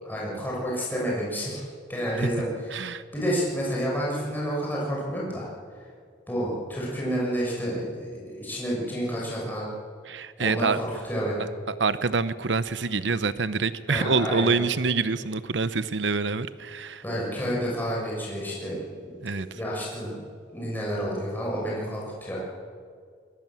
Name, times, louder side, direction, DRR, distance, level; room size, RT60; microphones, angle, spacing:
voice 1, 0.0-1.6 1.9-2.5 2.8-2.9 3.1-5.5 6.3-9.7 10.4-11.5 13.9-14.5 17.0-20.1 20.5-22.4, equal, 10° left, -4 dB, 6.7 m, -30 dB
voice 2, 2.7-3.0 10.1-10.8 11.7-17.0 19.2-19.5, right 4 dB, 85° right, 14 dB, 0.8 m, -26 dB
22.0 x 21.0 x 7.6 m, 2.1 s
head